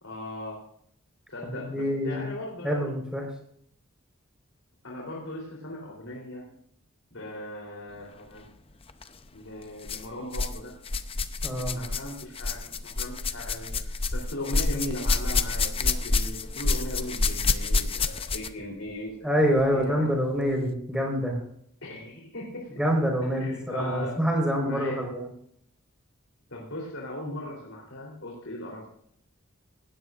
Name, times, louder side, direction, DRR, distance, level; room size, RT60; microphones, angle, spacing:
voice 1, 0.0-0.6 1.3-2.9 4.8-6.4 7.1-8.5 9.3-10.8 11.7-19.4 19.7-20.1 21.8-22.8 23.3-24.2 24.6-25.1 26.5-29.0, left 1 dB, 70° left, -2 dB, 3.5 m, -38 dB
voice 2, 1.4-2.2 2.6-3.3 11.4-11.8 19.2-21.4 22.8-25.3, equal, 5° right, 0 dB, 4.4 m, -26 dB
sound 1, 8.9-9.1 9.8-10.6 10.8-18.6 19.6-19.7 20.5-20.6, left 3 dB, 25° left, 0.6 m, -28 dB
20.0 x 16.5 x 2.5 m, 0.66 s
head